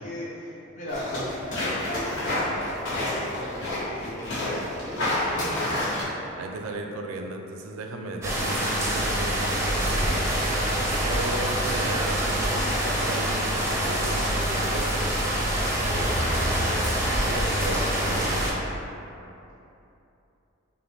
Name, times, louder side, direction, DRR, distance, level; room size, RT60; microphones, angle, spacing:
voice 1, 0.0-6.0 12.5-12.7 15.9-16.9 17.2-17.9, left 1 dB, 35° left, -6 dB, 0.8 m, -37 dB
sound 1, 0.9-6.0, left 1 dB, 60° left, 1.5 m, -29 dB
voice 2, 4.5-5.0 5.3-5.5 6.4-10.6 10.9-15.1 17.3-18.6, right 2 dB, 80° right, 3 dB, 0.4 m, -36 dB
sound 2, 8.2-18.5, right 1 dB, 15° right, 0.5 m, -25 dB
5.7 x 2.1 x 3.5 m, 2.8 s
head